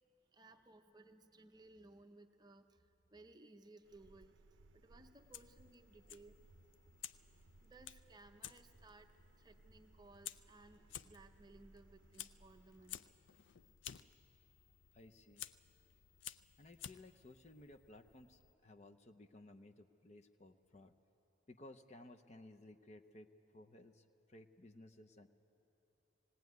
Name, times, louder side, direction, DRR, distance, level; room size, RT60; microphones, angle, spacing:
voice 1, 0.3-4.4 4.7-6.5 7.6-13.1, right 2 dB, 20° right, 6 dB, 0.7 m, -61 dB
sound 1, 3.8-13.0, right 2 dB, 85° right, 0.5 m, -66 dB
Fire, 5.1-18.5, left 11 dB, 80° left, 0.5 m, -55 dB
voice 2, 14.9-15.5 16.6-20.9 21.5-23.3 23.5-25.3, left 2 dB, 35° left, 6 dB, 0.7 m, -58 dB
18.5 x 18.5 x 9.4 m, 3.0 s
head